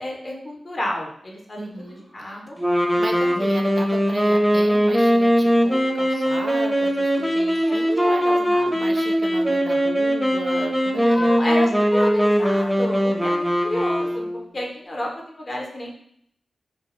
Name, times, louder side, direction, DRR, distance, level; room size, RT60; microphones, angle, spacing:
voice 1, 0.0-2.6 7.4-8.9 11.0-14.2 14.5-15.9, left 1 dB, 50° left, -1 dB, 0.7 m, -31 dB
voice 2, 1.6-2.4 3.0-11.3, right 1 dB, 50° right, 3 dB, 0.4 m, -35 dB
sound 1, 2.6-14.4, equal, ahead, 0.5 m, -20 dB
2.2 x 2.0 x 3.0 m, 0.68 s
cardioid pair, 45°, 0 cm